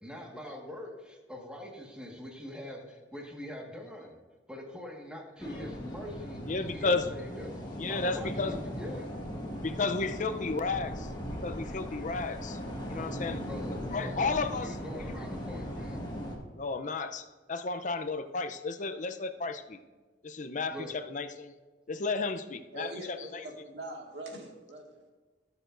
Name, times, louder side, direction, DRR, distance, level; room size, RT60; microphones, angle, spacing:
voice 1, 0.0-4.2 4.5-6.4 6.7-7.6 7.9-9.1 13.4-16.0 20.7-21.0, left 1 dB, 5° right, 0 dB, 1.6 m, -43 dB
sound 1, 5.4-16.4, equal, 25° left, 1.5 m, -38 dB
voice 2, 6.5-7.1 7.8-8.6 9.6-12.6 12.9-13.4 13.9-15.2 16.5-19.8 20.2-21.5 21.9-23.5, left 3 dB, 45° left, 9 dB, 0.6 m, -33 dB
voice 3, 22.7-25.0, right 2 dB, 70° right, 0 dB, 2.0 m, -43 dB
19.0 x 6.9 x 2.6 m, 1.3 s
head